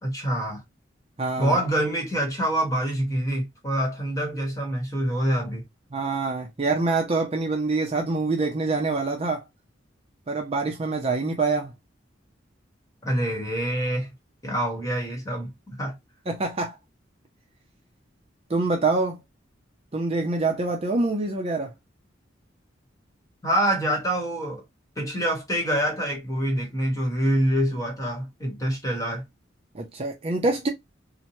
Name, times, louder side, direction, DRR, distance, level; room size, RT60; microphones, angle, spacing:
voice 1, 0.0-0.6 1.4-5.6 13.0-14.1 14.4-15.5 15.8-16.0 23.4-24.6 25.0-29.2, right 1 dB, 15° left, 1.1 m, -26 dB
voice 2, 1.2-1.6 5.9-9.4 10.3-11.7 16.3-16.8 18.5-19.2 19.9-21.7 29.7-30.7, right 3 dB, 30° right, 0.5 m, -25 dB
2.8 x 2.1 x 2.9 m
head